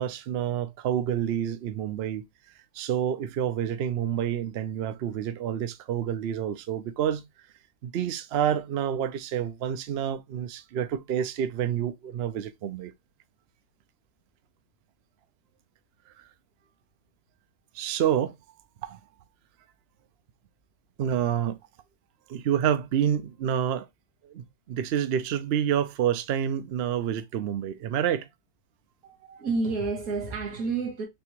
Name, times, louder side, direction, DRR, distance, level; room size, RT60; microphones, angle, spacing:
voice 1, 0.0-2.2 2.7-7.2 7.8-12.9 16.2-16.3 17.7-18.4 18.8-19.0 21.0-21.6 22.3-23.9 24.2-28.3, right 9 dB, 85° right, 0.5 m, -28 dB
voice 2, 29.0-31.1, right 4 dB, 60° right, 1.9 m, -30 dB
4.4 x 3.3 x 2.9 m
omnidirectional pair, 1.8 m